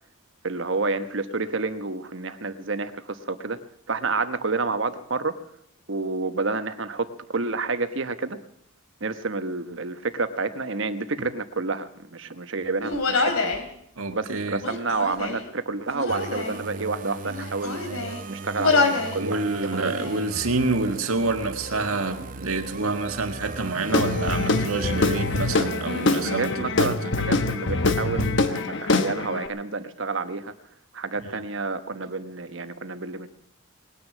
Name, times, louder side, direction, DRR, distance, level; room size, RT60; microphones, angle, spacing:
voice 1, 0.4-3.6 3.9-5.4 5.9-8.4 9.0-13.5 14.1-17.8 18.3-19.9 26.2-30.5 30.9-33.3, right 3 dB, 60° right, 10 dB, 1.1 m, -29 dB
Human voice, 12.8-13.6 14.5-15.5 15.9-16.6 17.2-18.2 18.6-19.2 19.5-20.2, left 3 dB, 85° left, 2.7 m, -26 dB
voice 2, 14.0-14.6 19.2-26.9, right 3 dB, 80° right, 6 dB, 1.8 m, -27 dB
sound 1, 16.1-26.9, right 3 dB, 40° right, 0.6 m, -38 dB
Guitar / Drum, 23.9-29.5, left 3 dB, 55° left, 1.1 m, -24 dB
20.0 x 9.9 x 7.3 m, 0.72 s
head